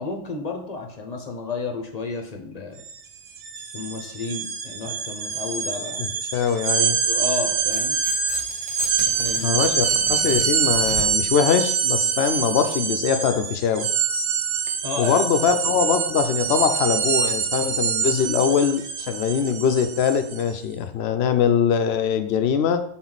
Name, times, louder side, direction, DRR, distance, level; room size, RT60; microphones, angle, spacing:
voice 1, 0.0-2.8 3.7-6.1 7.1-8.0 9.1-9.7 14.8-15.2, left 3 dB, 40° left, 3 dB, 0.9 m, -32 dB
sound 1, 2.8-3.0 3.3-20.5, right 7 dB, 90° right, 1.0 m, -25 dB
voice 2, 6.0-7.0 9.4-13.9 15.0-22.8, left 7 dB, 70° left, 9 dB, 0.8 m, -22 dB
Tearing, 7.6-11.4, equal, 25° right, 1.3 m, -38 dB
6.1 x 4.0 x 4.0 m, 0.65 s
omnidirectional pair, 1.2 m